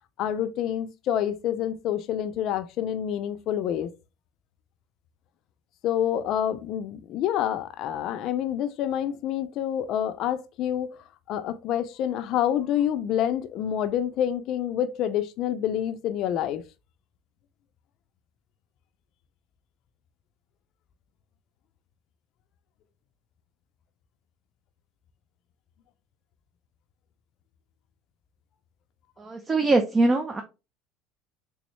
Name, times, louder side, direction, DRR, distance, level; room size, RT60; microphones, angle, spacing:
voice 1, 0.2-3.9 5.8-10.9 11.3-16.6, left 10 dB, 55° left, 0.4 m, -27 dB
voice 2, 29.2-30.4, right 2 dB, 20° right, 0.6 m, -22 dB
3.5 x 3.0 x 3.0 m
supercardioid pair, 110°, 0 cm